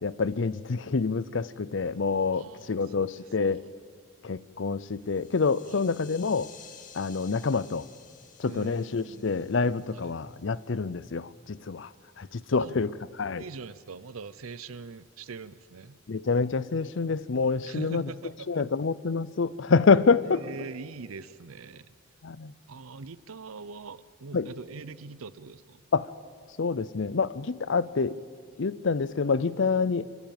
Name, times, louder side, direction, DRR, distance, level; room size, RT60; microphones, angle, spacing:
voice 1, 0.0-3.6 4.2-6.5 6.9-7.9 8.4-13.4 16.1-18.1 18.5-20.5 22.2-22.5 24.3-24.5 25.9-26.1 26.6-28.2 28.6-30.0, left 4 dB, 60° left, 18 dB, 0.6 m, -27 dB
voice 2, 2.3-3.1 5.7-5.8 8.4-9.5 9.9-10.0 12.6-12.8 13.4-16.0 17.6-18.6 20.3-21.9 22.7-25.8, right 4 dB, 90° right, 17 dB, 0.7 m, -42 dB
sound 1, 4.9-11.0, left 8 dB, 40° left, 1.3 m, -53 dB
25.5 x 14.5 x 9.1 m, 2.1 s
head